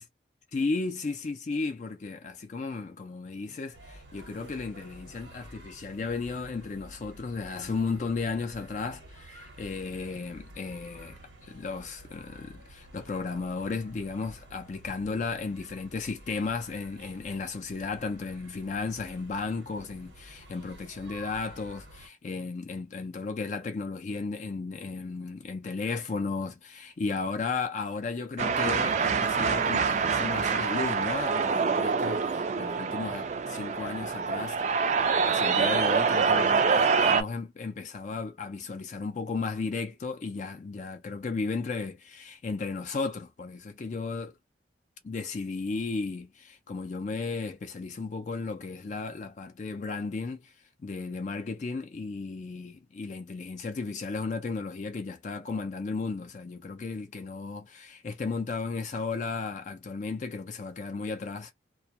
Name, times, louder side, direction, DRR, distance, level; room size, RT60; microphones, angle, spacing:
voice 1, 0.5-34.6 35.2-44.3 45.0-50.5 50.8-61.5, left 4 dB, 40° left, 0.4 m, -34 dB
sound 1, 3.7-22.1, right 1 dB, 90° right, 1.0 m, -50 dB
sound 2, 28.4-37.2, right 5 dB, 40° right, 0.3 m, -26 dB
2.2 x 2.1 x 2.7 m
head